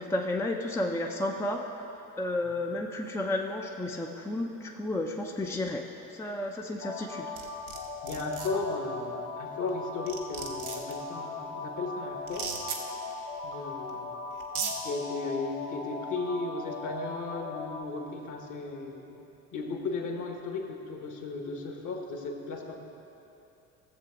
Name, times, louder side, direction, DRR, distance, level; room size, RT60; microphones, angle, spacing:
voice 1, 0.0-1.6 2.2-5.8 6.1-7.3, left 1 dB, 5° left, 2 dB, 0.6 m, -32 dB
sound 1, 6.8-17.8, left 3 dB, 75° left, 1.3 m, -39 dB
sound 2, 7.4-7.8 8.1-8.5 9.7-9.8 10.1-10.9 12.3-12.8 13.9-14.0 14.4-14.7, right 6 dB, 85° right, 1.0 m, -35 dB
voice 2, 8.0-12.5 13.4-14.1 14.8-19.2 19.5-22.8, left 3 dB, 45° left, 3 dB, 1.4 m, -35 dB
15.0 x 7.5 x 3.7 m, 3.0 s
figure-of-eight pair, 60°, 43 cm